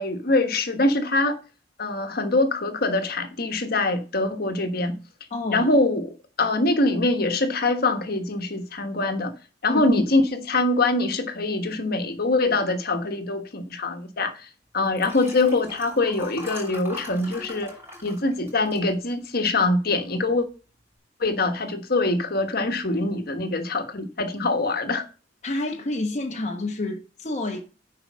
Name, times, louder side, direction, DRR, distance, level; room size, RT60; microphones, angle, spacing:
voice 1, 0.0-1.4 1.8-5.0 5.5-9.3 9.6-17.8 18.0-20.5 21.2-25.0, left 2 dB, 55° left, 1.4 m, -24 dB
voice 2, 5.3-5.7 9.7-10.0 25.4-27.6, left 2 dB, 40° left, 1.1 m, -28 dB
Liquid, 14.8-19.5 20.0-20.2 20.5-20.6, left 1 dB, 15° right, 5.8 m, -41 dB
9.8 x 4.8 x 6.2 m
head